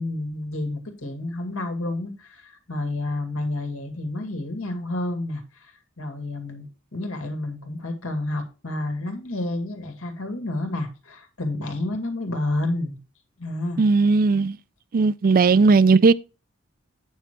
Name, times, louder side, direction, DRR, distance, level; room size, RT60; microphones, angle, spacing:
voice 1, 0.0-13.0 13.4-13.8, left 2 dB, 80° left, 2.3 m, -30 dB
voice 2, 13.8-14.6 14.9-16.1, right 4 dB, 45° right, 0.4 m, -17 dB
9.2 x 6.4 x 4.5 m
head